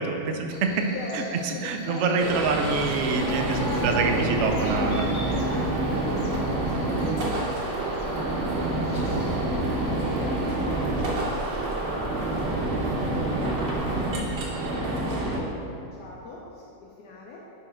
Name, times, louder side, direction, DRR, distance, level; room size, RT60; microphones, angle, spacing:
voice 1, 0.0-0.9 1.1-3.6 3.8-5.4, right 4 dB, 65° right, 4 dB, 0.7 m, -26 dB
Buzz, 0.5-10.5, equal, 35° left, 1.0 m, -41 dB
voice 2, 0.9-2.8 3.2-6.7 7.0-9.2 9.8-17.4, left 2 dB, 70° left, -3 dB, 1.3 m, -40 dB
sound 1, 2.2-15.4, right 2 dB, 85° right, 1.7 m, -27 dB
sound 2, 2.6-14.4, right 1 dB, 20° left, 1.3 m, -42 dB
10.5 x 4.2 x 3.8 m, 2.7 s
omnidirectional pair, 1.8 m